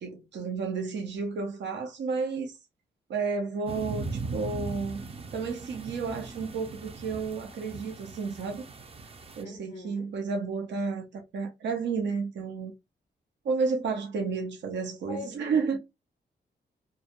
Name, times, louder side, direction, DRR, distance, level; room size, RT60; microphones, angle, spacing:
voice 1, 0.0-2.6 3.1-4.0 4.3-5.1 5.3-8.6 9.4-12.7 13.4-15.8, right 4 dB, 85° right, 0.6 m, -31 dB
sound 1, 3.7-9.4, right 3 dB, 35° right, 0.4 m, -39 dB
voice 2, 9.4-10.1 15.0-15.6, left 3 dB, 45° left, 0.5 m, -42 dB
2.2 x 2.1 x 2.8 m
cardioid pair, 70°, 18 cm